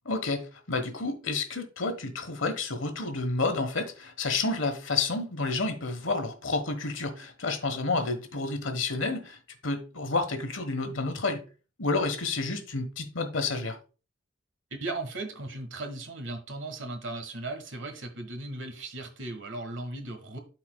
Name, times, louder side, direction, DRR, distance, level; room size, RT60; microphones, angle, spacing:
voice 1, 0.0-11.4 11.8-13.8, left 3 dB, 75° left, 1.2 m, -30 dB
voice 2, 14.7-20.4, right 2 dB, 65° right, 1.3 m, -37 dB
12.5 x 4.3 x 2.2 m
head